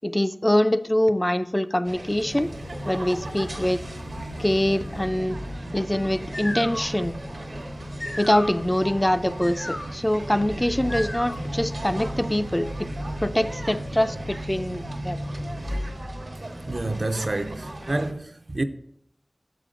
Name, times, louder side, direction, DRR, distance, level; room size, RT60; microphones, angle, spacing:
voice 1, 0.0-2.5 2.9-3.8 4.4-5.4 5.7-7.2 8.2-12.7 13.2-15.2, left 1 dB, 20° left, 0.3 m, -24 dB
sound 1, 1.8-18.1, right 1 dB, 85° right, 1.0 m, -38 dB
sound 2, 2.0-16.2, equal, 70° left, 1.4 m, -37 dB
sound 3, 6.0-11.6, left 1 dB, 45° left, 0.7 m, -37 dB
voice 2, 16.7-18.6, right 2 dB, 65° right, 0.4 m, -28 dB
6.7 x 5.0 x 3.7 m
wide cardioid pair, 45°, 0 cm